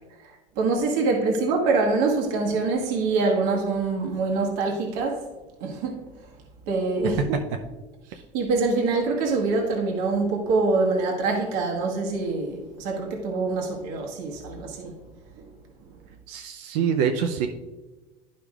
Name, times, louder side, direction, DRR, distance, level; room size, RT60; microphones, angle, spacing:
voice 1, 0.2-5.2 5.6-6.0 6.7-7.2 8.1-14.9 15.4-15.5, right 3 dB, 65° right, 1 dB, 1.3 m, -25 dB
voice 2, 16.3-17.5, right 7 dB, 85° right, 4 dB, 0.6 m, -25 dB
11.5 x 5.1 x 2.4 m, 1.2 s
cardioid pair, 165°, 16 cm